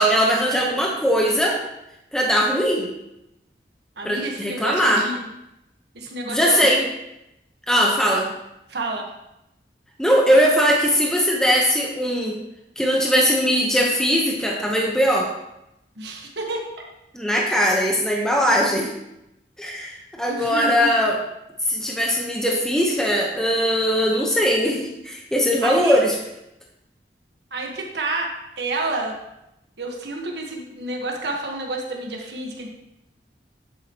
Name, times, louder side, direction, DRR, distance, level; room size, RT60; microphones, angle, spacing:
voice 1, 0.0-1.6 2.1-2.9 4.0-5.0 6.3-6.8 7.7-8.2 10.0-12.4 12.8-15.3 17.1-18.9 19.6-21.2 21.7-26.1, equal, 5° left, -2 dB, 1.1 m, -20 dB
voice 2, 4.0-5.3 5.9-6.8 8.0-8.3 8.7-9.0 16.0-16.9 20.3-20.9 25.6-26.0 27.5-29.2 29.8-32.7, right 2 dB, 75° right, 0 dB, 1.5 m, -29 dB
10.5 x 7.9 x 3.1 m, 0.87 s
head